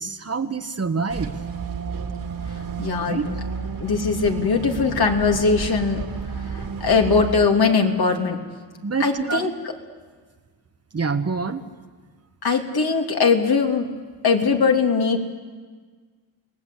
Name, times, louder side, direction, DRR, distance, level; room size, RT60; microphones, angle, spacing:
voice 1, 0.0-1.3 3.0-3.3 8.8-9.5 10.9-11.6, right 4 dB, 35° right, 7 dB, 1.4 m, -26 dB
sound 1, 1.1-7.4, right 5 dB, 55° right, 2.6 m, -31 dB
voice 2, 2.8-3.2 3.8-6.0 6.5-8.4 9.0-9.5 12.4-13.9 14.2-15.2, left 5 dB, 55° left, 2 dB, 3.0 m, -20 dB
29.0 x 19.0 x 8.3 m, 1.5 s
cardioid pair, 90°, 44 cm